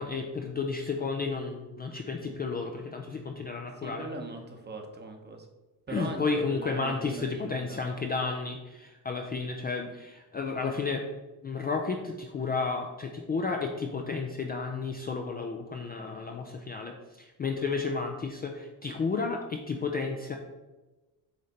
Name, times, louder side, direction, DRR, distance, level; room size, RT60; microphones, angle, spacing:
voice 1, 0.0-4.1 5.9-11.1 11.4-20.4, left 4 dB, 25° left, 3 dB, 0.3 m, -32 dB
voice 2, 3.8-5.5 5.9-7.8, right 2 dB, 25° right, 4 dB, 0.8 m, -40 dB
7.8 x 3.2 x 4.1 m, 1.1 s
cardioid pair, 145°, 41 cm